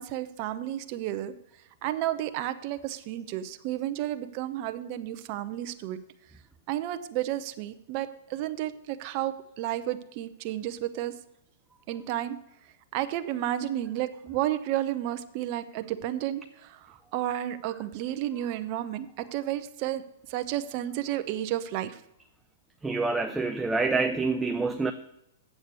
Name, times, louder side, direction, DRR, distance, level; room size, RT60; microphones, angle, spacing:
voice 1, 0.0-1.3 1.8-6.0 6.7-11.1 11.9-12.4 12.9-20.0 20.3-21.9, right 13 dB, 45° right, 10 dB, 0.8 m, -32 dB
voice 2, 22.8-24.9, right 3 dB, 5° right, 6 dB, 0.5 m, -27 dB
8.3 x 7.2 x 6.9 m, 0.81 s
hypercardioid pair, 130°, 0 cm